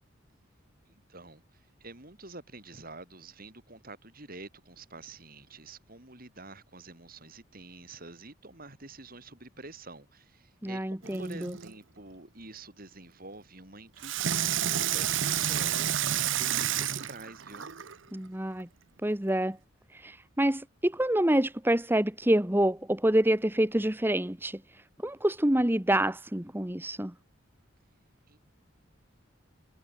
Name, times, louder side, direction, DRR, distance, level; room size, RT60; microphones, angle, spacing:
voice 1, 0.9-17.7 28.3-28.4, right 2 dB, 45° right, 6.5 m, -48 dB
voice 2, 10.6-11.5 18.1-18.7 19.0-19.6 19.9-24.6 25.0-27.1, right 1 dB, 10° right, 1.2 m, -27 dB
Water tap faucet / Sink (filling or washing), 11.0-11.7 14.0-18.0 18.6-18.7, right 10 dB, 75° right, 1.0 m, -30 dB
head